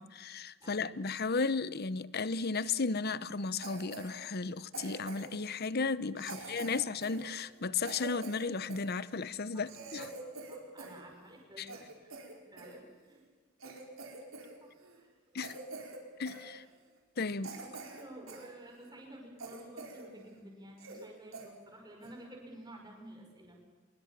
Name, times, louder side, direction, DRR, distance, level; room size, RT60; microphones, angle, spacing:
voice 1, 0.0-10.1 11.6-11.7 15.3-15.5 16.2-16.6 17.2-17.5, left 4 dB, 45° left, 0.8 m, -34 dB
voice 2, 0.6-1.1 6.2-6.8 9.5-9.7 10.0-10.1 10.5-13.2 14.6-15.4 16.5-16.7 17.3-23.6, right 1 dB, 20° right, 5.6 m, -52 dB
Cough, 3.6-4.1 4.7-5.4 6.2-8.9 9.3-9.4 9.7-11.0 11.3-12.8 13.2-13.3 13.6-14.5 14.8-15.0 15.4-16.0 16.3-16.5 17.0-17.1 17.4-18.5 18.9-19.0 19.4-20.1 20.4-20.5 20.8-21.1 21.3-21.5 22.0-22.2, right 3 dB, 65° right, 4.8 m, -46 dB
24.0 x 22.5 x 7.3 m
head